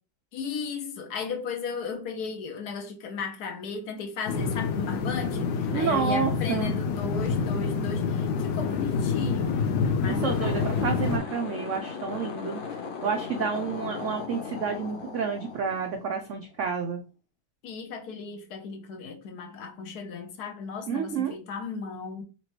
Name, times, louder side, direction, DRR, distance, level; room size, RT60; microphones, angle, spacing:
voice 1, 0.3-9.6 10.0-10.7 17.6-22.2, left 5 dB, 70° left, 1.1 m, -36 dB
sound 1, 4.3-11.2, left 5 dB, 90° left, 1.3 m, -27 dB
voice 2, 5.7-6.7 10.2-12.6 13.0-17.0 20.9-21.4, right 6 dB, 80° right, 0.6 m, -29 dB
sound 2, 10.1-16.6, left 5 dB, 55° left, 0.6 m, -37 dB
4.3 x 2.9 x 3.0 m
omnidirectional pair, 1.9 m